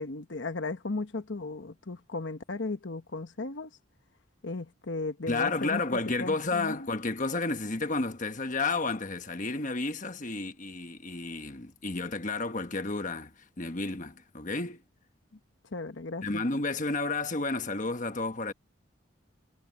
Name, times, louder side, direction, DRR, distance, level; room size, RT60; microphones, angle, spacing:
voice 1, 0.0-3.7 4.4-5.8 6.2-6.8 15.7-16.4, left 3 dB, 70° left, 1.1 m, -35 dB
voice 2, 5.3-14.8 16.2-18.5, left 3 dB, 40° left, 1.2 m, -31 dB
head